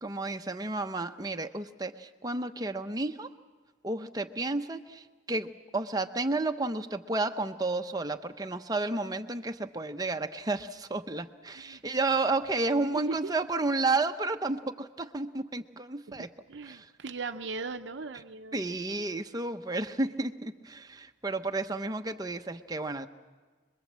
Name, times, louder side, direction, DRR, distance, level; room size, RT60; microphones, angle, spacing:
voice 1, 0.0-3.3 3.8-16.3 16.7-16.9 18.5-23.1, right 3 dB, 20° right, 7 dB, 0.8 m, -32 dB
voice 2, 12.8-13.3 16.1-18.6, right 4 dB, 65° right, 7 dB, 0.7 m, -38 dB
26.5 x 22.0 x 7.4 m, 1.4 s
head